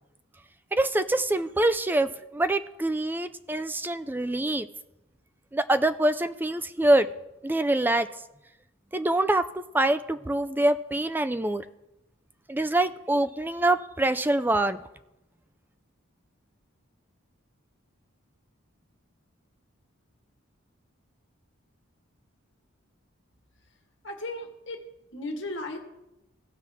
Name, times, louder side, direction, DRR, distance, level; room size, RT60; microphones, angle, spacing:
voice 1, 0.7-4.7 5.5-7.1 7.4-8.1 8.9-11.6 12.5-14.8, right 1 dB, 10° right, 11 dB, 0.3 m, -25 dB
voice 2, 24.0-24.8 25.1-25.8, left 2 dB, 60° left, 3 dB, 1.5 m, -35 dB
17.5 x 6.0 x 3.5 m, 0.91 s
head